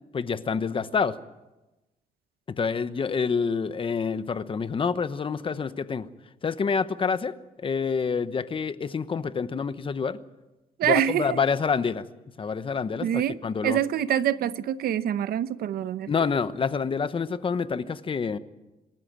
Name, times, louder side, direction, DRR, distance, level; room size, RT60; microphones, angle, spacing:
voice 1, 0.1-1.2 2.5-6.1 6.4-10.2 10.8-12.0 12.4-13.8 16.1-18.4, left 5 dB, 35° left, 1.0 m, -27 dB
voice 2, 10.8-11.4 13.0-13.4 13.6-16.1, right 10 dB, 85° right, 0.8 m, -25 dB
26.5 x 13.5 x 8.8 m
cardioid pair, 125°, 15 cm